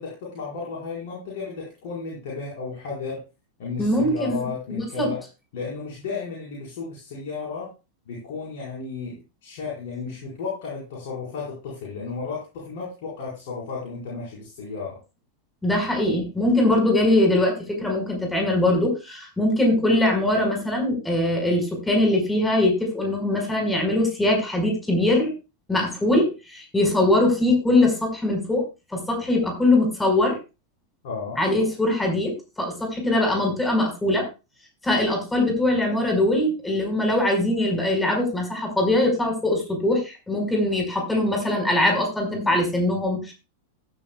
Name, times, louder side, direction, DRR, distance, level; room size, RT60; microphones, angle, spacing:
voice 1, 0.0-3.2 3.6-5.2 5.5-7.7 8.1-15.0 31.0-31.4, left 4 dB, 50° left, -4 dB, 4.8 m, -33 dB
voice 2, 3.8-5.1 15.6-25.3 25.7-28.6 28.9-30.4 31.4-34.3 34.8-43.3, left 1 dB, 10° left, 2 dB, 5.1 m, -22 dB
16.0 x 10.0 x 2.3 m, 0.28 s
figure-of-eight pair, 90°, 0 cm